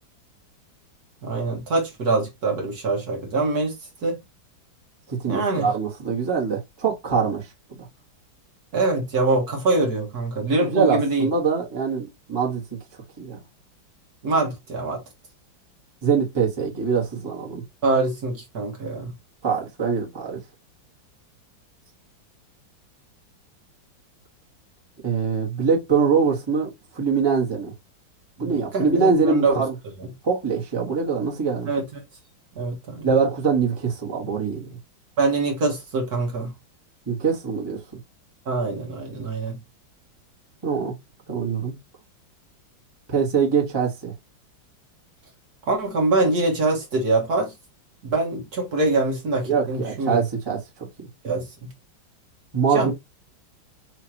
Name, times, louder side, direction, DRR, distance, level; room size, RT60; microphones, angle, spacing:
voice 1, 1.2-4.2 5.3-5.7 8.7-11.3 14.2-15.0 17.8-19.1 28.4-29.6 31.7-31.8 32.6-33.1 35.2-36.5 38.5-39.6 45.7-47.5 48.0-50.2 51.2-51.7 52.7-52.9, right 3 dB, 55° right, 1.7 m, -24 dB
voice 2, 5.1-7.9 10.6-12.6 13.2-13.4 16.0-17.6 19.4-20.4 25.0-27.7 28.4-29.7 30.2-31.7 33.0-34.8 37.1-37.8 40.6-40.9 41.3-41.7 43.1-44.1 49.5-51.1 52.5-52.9, right 5 dB, 15° right, 1.4 m, -23 dB
6.2 x 2.9 x 2.9 m
omnidirectional pair, 2.1 m